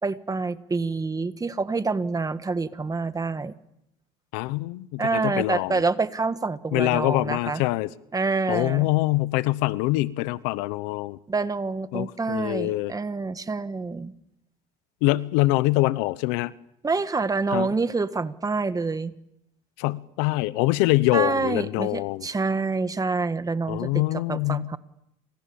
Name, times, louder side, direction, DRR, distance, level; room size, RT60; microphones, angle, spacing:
voice 1, 0.0-3.5 5.0-7.6 8.1-8.9 11.3-14.1 16.8-19.1 21.1-24.8, right 4 dB, 20° right, 1.5 m, -27 dB
voice 2, 4.3-5.8 6.7-7.9 8.5-11.2 11.9-12.9 15.0-16.5 17.5-17.7 19.8-22.3 23.7-24.7, left 19 dB, 85° left, 1.0 m, -24 dB
30.0 x 27.5 x 7.1 m
supercardioid pair, 105°, 20 cm